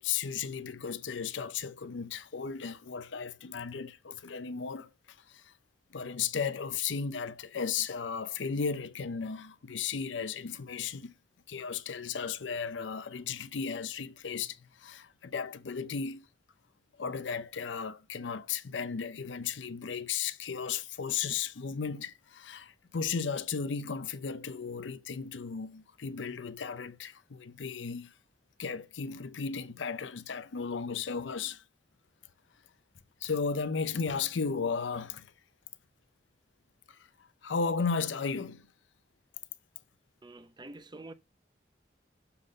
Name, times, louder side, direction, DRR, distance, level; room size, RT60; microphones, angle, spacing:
voice 1, 0.0-4.9 5.3-5.5 5.9-11.1 11.5-16.3 17.0-28.1 28.6-31.6 33.2-35.3 36.9-37.0 37.4-38.7, left 6 dB, 85° left, 0.6 m, -35 dB
voice 2, 40.2-41.1, right 2 dB, 25° right, 0.6 m, -47 dB
6.8 x 3.8 x 6.4 m
head